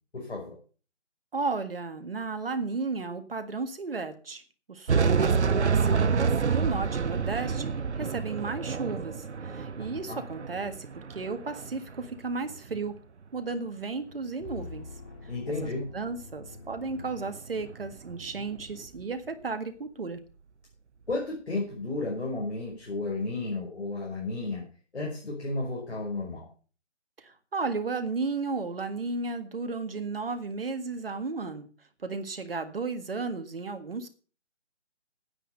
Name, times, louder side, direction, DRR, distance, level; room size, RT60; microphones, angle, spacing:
voice 1, 0.1-0.6 10.1-10.2 15.3-15.9 21.1-24.7 24.9-26.5, left 2 dB, 60° left, -2 dB, 5.4 m, -33 dB
voice 2, 1.3-4.4 4.7-7.7 8.0-13.0 13.3-14.9 15.6-20.2 27.2-31.7 32.0-34.1, right 4 dB, 50° right, 8 dB, 1.8 m, -34 dB
sound 1, 4.9-12.2 12.5-12.9 16.9-19.0, right 5 dB, 70° right, 0.8 m, -28 dB
sound 2, 14.4-17.9, left 3 dB, 45° left, 4.1 m, -46 dB
9.9 x 9.6 x 6.7 m, 0.38 s
figure-of-eight pair, 165°, 36 cm